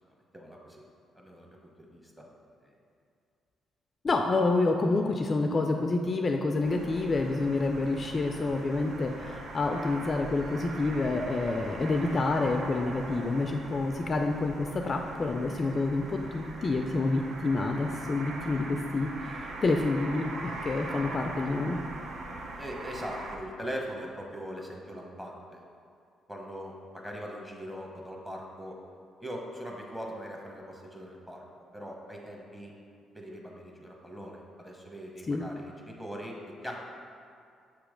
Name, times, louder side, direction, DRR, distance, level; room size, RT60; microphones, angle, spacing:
voice 1, 0.3-0.8 1.1-2.2 2.6-2.7 22.6-25.6 26.3-28.8 29.2-32.7 33.1-36.8, equal, 5° right, -1 dB, 1.0 m, -41 dB
voice 2, 4.0-21.8 35.3-35.5, left 3 dB, 35° left, 3 dB, 0.3 m, -28 dB
sound 1, 6.6-23.4, right 2 dB, 60° right, 0.6 m, -41 dB
6.8 x 3.0 x 5.0 m, 2.4 s
cardioid pair, 90°, 0 cm